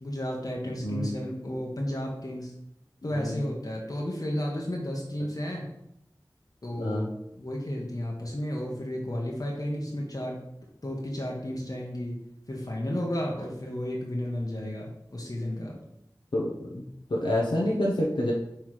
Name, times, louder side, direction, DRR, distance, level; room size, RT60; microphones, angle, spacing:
voice 1, 0.0-2.5 3.0-5.7 6.6-10.4 10.8-12.2 12.5-15.8, left 1 dB, 50° left, -2 dB, 1.2 m, -33 dB
voice 2, 3.1-3.4 6.8-7.1 14.6-14.7 16.3-16.8 17.1-18.3, left 1 dB, 85° left, -3 dB, 0.9 m, -28 dB
5.9 x 3.4 x 4.7 m, 0.79 s
wide cardioid pair, 60°, 8 cm